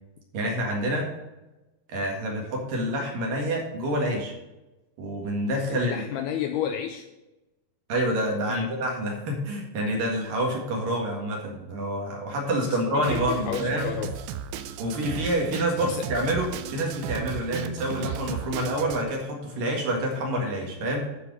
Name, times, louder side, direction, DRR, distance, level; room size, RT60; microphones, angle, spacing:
voice 1, 0.3-1.1 1.9-4.3 5.0-6.0 7.9-13.9 14.8-21.1, right 1 dB, 60° right, 0 dB, 3.0 m, -27 dB
voice 2, 5.7-7.1 8.5-8.7 12.5-14.1 15.8-16.0, left 9 dB, 80° left, 6 dB, 2.3 m, -32 dB
Drum kit, 13.0-19.0, right 8 dB, 80° right, 2.7 m, -35 dB
12.0 x 4.7 x 6.1 m, 1.0 s
omnidirectional pair, 5.1 m